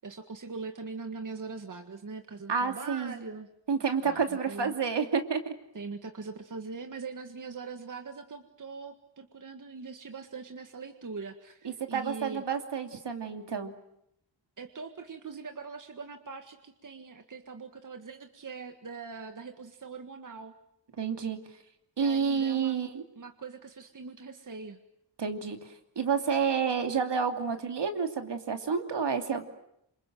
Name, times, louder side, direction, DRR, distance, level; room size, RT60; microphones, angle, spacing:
voice 1, 0.0-3.5 4.0-4.7 5.7-12.4 14.6-20.5 22.0-22.7 23.1-24.8, right 4 dB, 40° right, 6 dB, 1.8 m, -42 dB
voice 2, 2.5-3.1 3.7-5.5 11.6-13.7 21.0-21.4 22.0-23.0 25.2-29.5, right 6 dB, 65° right, 6 dB, 2.9 m, -29 dB
28.0 x 26.5 x 7.7 m, 0.78 s
wide cardioid pair, 120°, 45 cm